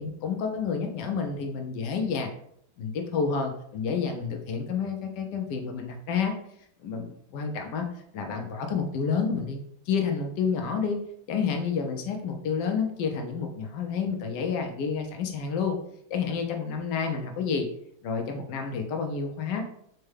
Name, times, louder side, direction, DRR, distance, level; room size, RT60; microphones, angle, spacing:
voice 1, 0.0-2.3 2.8-6.3 6.8-7.9 8.1-9.6 9.9-11.0 11.3-15.8 16.1-17.7 18.0-19.6, left 6 dB, 75° left, 4 dB, 1.1 m, -29 dB
4.5 x 2.1 x 3.2 m, 0.69 s
omnidirectional pair, 2.1 m